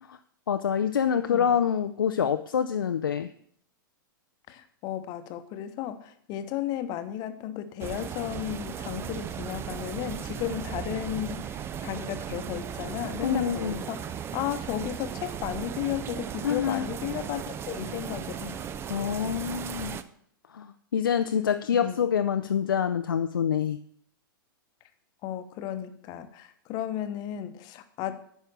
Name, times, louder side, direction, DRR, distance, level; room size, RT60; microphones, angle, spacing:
voice 1, 0.5-3.3 13.2-13.8 16.4-16.9 18.9-20.0 20.5-23.8, left 8 dB, 75° left, 8 dB, 0.5 m, -26 dB
voice 2, 1.3-1.6 4.5-18.6 21.7-22.0 25.2-28.2, left 11 dB, 35° left, 10 dB, 0.9 m, -34 dB
sound 1, 7.8-20.0, right 8 dB, 20° right, 0.5 m, -36 dB
9.3 x 5.5 x 6.7 m, 0.67 s
figure-of-eight pair, 100°, 12 cm